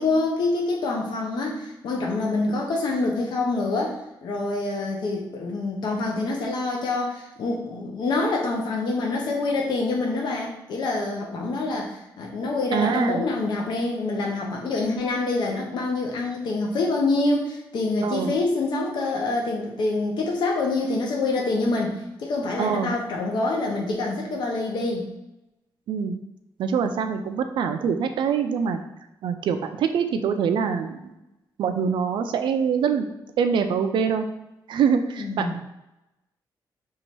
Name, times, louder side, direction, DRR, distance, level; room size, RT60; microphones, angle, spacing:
voice 1, 0.0-25.1 35.2-35.6, left 3 dB, 65° left, -1 dB, 0.7 m, -26 dB
voice 2, 12.7-13.2 18.0-18.4 22.6-22.9 25.9-26.2 26.6-28.8 29.2-31.1 31.6-33.1 33.4-34.3 34.7-35.6, right 6 dB, 75° right, 7 dB, 0.4 m, -24 dB
3.1 x 2.8 x 4.5 m, 0.95 s
cardioid pair, 120°, 8 cm